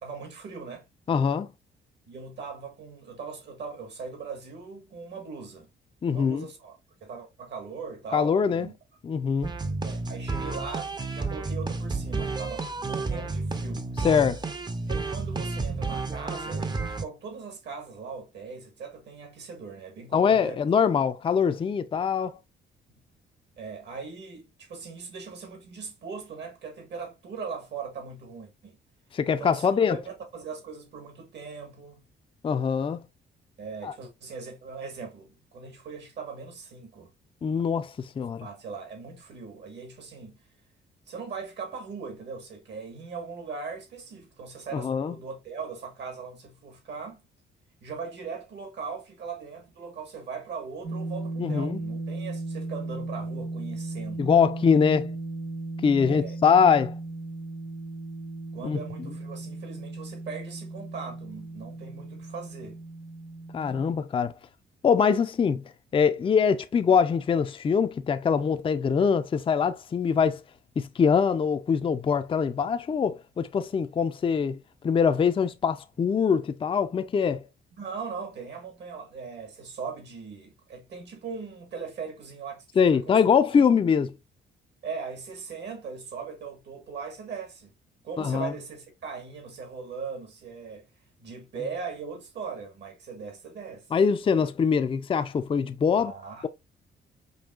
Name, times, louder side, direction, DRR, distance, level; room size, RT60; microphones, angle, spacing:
voice 1, 0.0-0.8 2.1-5.7 6.1-6.7 7.0-8.7 9.8-13.9 14.9-20.6 22.9-23.0 23.6-28.8 29.2-32.0 33.6-37.1 38.4-40.4 41.1-47.2 47.8-54.3 56.0-56.4 58.5-62.8 77.8-82.6 82.9-83.6 84.8-87.7 88.0-90.9 91.2-93.9 95.9-96.5, right 5 dB, 60° right, 1.5 m, -39 dB
voice 2, 1.1-1.5 6.0-6.5 8.1-8.7 9.0-9.5 14.0-14.4 20.1-22.4 29.1-30.0 32.4-33.0 33.8-33.9 37.4-38.5 44.7-45.1 51.4-51.8 54.2-55.1 55.8-56.9 58.6-58.8 63.5-64.3 64.8-65.6 65.9-70.4 70.8-74.6 74.8-77.4 82.8-84.1 88.2-88.5 93.9-96.1, left 6 dB, 25° left, 0.4 m, -23 dB
sound 1, 9.4-17.0, right 3 dB, 20° right, 0.6 m, -31 dB
sound 2, 50.8-63.9, right 2 dB, 80° right, 1.6 m, -36 dB
5.4 x 2.7 x 2.4 m
cardioid pair, 90°, 20 cm